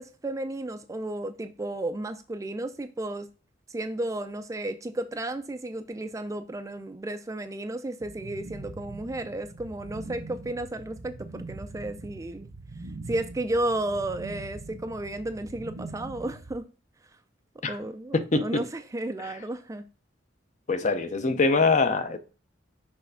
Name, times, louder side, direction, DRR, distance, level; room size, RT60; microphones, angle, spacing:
voice 1, 0.0-3.3 3.7-12.5 13.1-16.7 17.7-19.8, right 1 dB, 15° right, 0.4 m, -33 dB
sound 1, 8.0-16.6, right 2 dB, 60° right, 0.7 m, -42 dB
voice 2, 18.1-18.6 20.7-22.2, left 3 dB, 40° left, 0.7 m, -23 dB
6.2 x 3.4 x 5.5 m
head